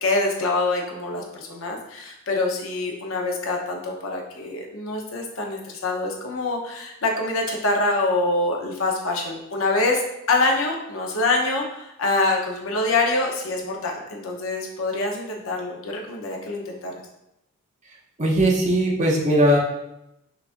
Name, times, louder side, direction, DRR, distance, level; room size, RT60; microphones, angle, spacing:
voice 1, 0.0-10.0 10.3-16.9, left 2 dB, 65° left, 1 dB, 0.7 m, -25 dB
voice 2, 18.2-19.6, right 1 dB, 35° right, -3 dB, 0.7 m, -19 dB
5.7 x 2.5 x 2.5 m, 0.86 s
head